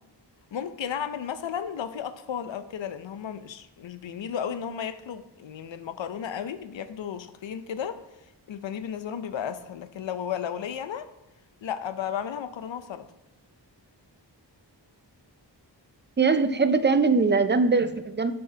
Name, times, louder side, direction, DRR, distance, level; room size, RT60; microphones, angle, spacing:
voice 1, 0.5-8.0 8.5-11.1 11.6-13.1, left 8 dB, 90° left, 11 dB, 0.6 m, -34 dB
voice 2, 16.2-18.3, right 4 dB, 25° right, 11 dB, 0.4 m, -21 dB
7.5 x 5.7 x 2.8 m, 0.93 s
wide cardioid pair, 85°, 44 cm